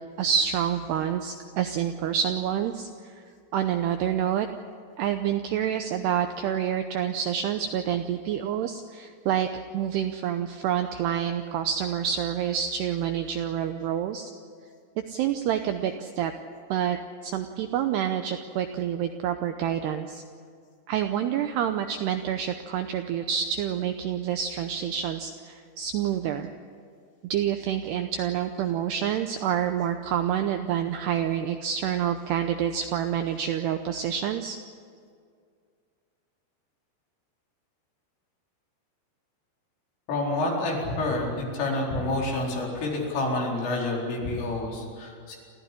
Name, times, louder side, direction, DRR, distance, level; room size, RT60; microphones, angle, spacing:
voice 1, 0.2-2.9 3.5-4.5 5.0-9.5 9.7-14.3 15.1-16.3 16.7-17.0 17.2-20.2 20.9-26.5 27.2-34.6, right 9 dB, 85° right, 7 dB, 2.4 m, -28 dB
voice 2, 40.1-45.4, left 2 dB, 75° left, -2 dB, 7.0 m, -28 dB
29.0 x 14.0 x 10.0 m, 2.2 s
omnidirectional pair, 5.8 m